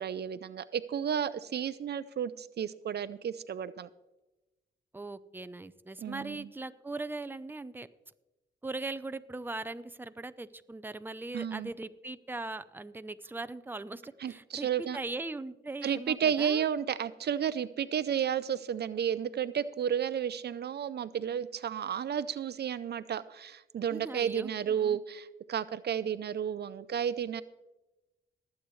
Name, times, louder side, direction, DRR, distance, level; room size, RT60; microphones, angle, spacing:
voice 1, 0.0-3.9 6.0-6.5 11.3-11.7 14.2-15.0 15.8-27.4, right 8 dB, 60° right, 15 dB, 0.5 m, -32 dB
voice 2, 4.9-7.9 8.6-16.7 23.9-25.0, right 2 dB, 10° right, 12 dB, 0.6 m, -40 dB
19.5 x 8.4 x 3.2 m, 1.0 s
cardioid pair, 65°, 19 cm